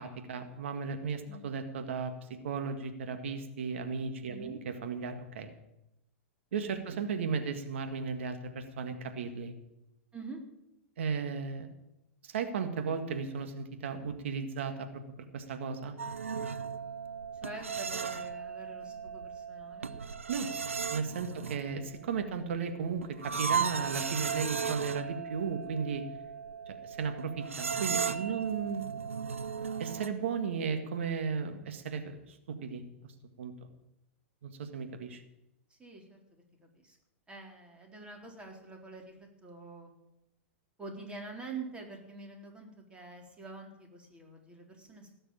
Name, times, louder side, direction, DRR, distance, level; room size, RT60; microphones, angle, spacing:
voice 1, 0.0-5.5 6.5-9.5 11.0-11.7 12.2-14.9 15.3-15.9 20.3-20.5 20.9-26.1 26.7-28.8 29.8-32.8 33.4-33.5 34.4-35.2, right 5 dB, 65° right, 7 dB, 1.8 m, -35 dB
voice 2, 4.3-4.6 6.7-7.0 10.1-10.4 17.4-20.0 21.3-21.4 28.3-28.5 35.7-37.0 37.3-39.9 40.8-45.2, right 3 dB, 15° right, 1 dB, 4.0 m, -46 dB
sound 1, 16.0-30.1, right 6 dB, 85° right, 0.8 m, -36 dB
18.0 x 6.7 x 8.8 m, 0.87 s
hypercardioid pair, 105°, 7 cm